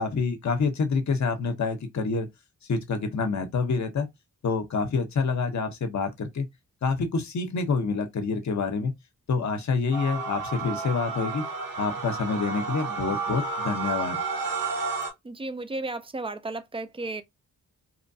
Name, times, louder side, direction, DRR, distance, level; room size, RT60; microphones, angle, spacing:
voice 1, 0.0-2.3 2.7-4.1 4.4-6.5 6.8-8.9 9.3-11.4 11.8-14.2, left 4 dB, 50° left, 0.7 m, -27 dB
sound 1, 9.9-15.1, right 4 dB, 65° right, 1.2 m, -31 dB
voice 2, 15.2-17.2, right 2 dB, 15° right, 0.3 m, -34 dB
3.0 x 2.2 x 2.6 m
wide cardioid pair, 110°, 35 cm